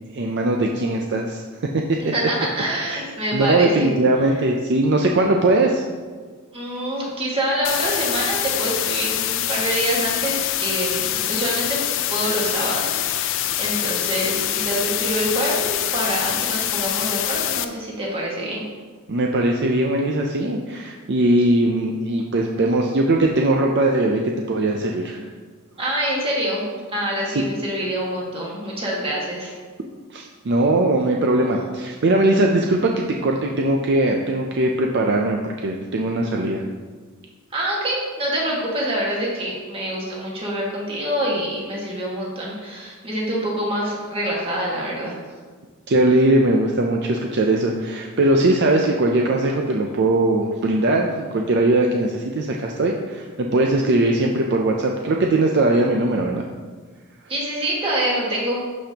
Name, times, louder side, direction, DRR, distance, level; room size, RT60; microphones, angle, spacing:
voice 1, 0.1-1.4 1.9-2.0 3.3-5.8 19.1-25.2 27.3-27.4 30.1-36.6 45.9-56.4, right 2 dB, 50° right, 1 dB, 0.5 m, -20 dB
voice 2, 2.0-3.9 6.5-11.8 12.1-18.7 22.4-22.5 25.8-26.7 26.9-29.5 37.5-45.1 57.3-58.6, right 1 dB, 25° right, -4 dB, 1.7 m, -26 dB
sound 1, 7.6-17.6, left 12 dB, 60° left, 0.4 m, -25 dB
11.5 x 5.1 x 2.9 m, 1.5 s
head